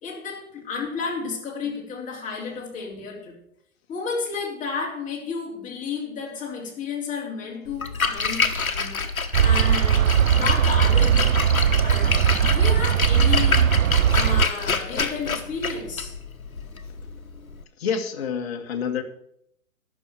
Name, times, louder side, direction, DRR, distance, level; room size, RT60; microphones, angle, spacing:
voice 1, 0.0-3.4 3.9-9.0 9.4-11.5 11.8-13.8 14.1-16.1, left 5 dB, 20° left, -2 dB, 3.4 m, -32 dB
Splash splatter, 7.7-17.6, left 5 dB, 85° left, 1.3 m, -28 dB
sound 1, 9.3-14.5, right 9 dB, 80° right, 0.5 m, -19 dB
voice 2, 17.8-19.0, left 6 dB, 50° left, 4 dB, 1.7 m, -27 dB
11.0 x 6.4 x 8.1 m, 0.72 s
figure-of-eight pair, 125°, 41 cm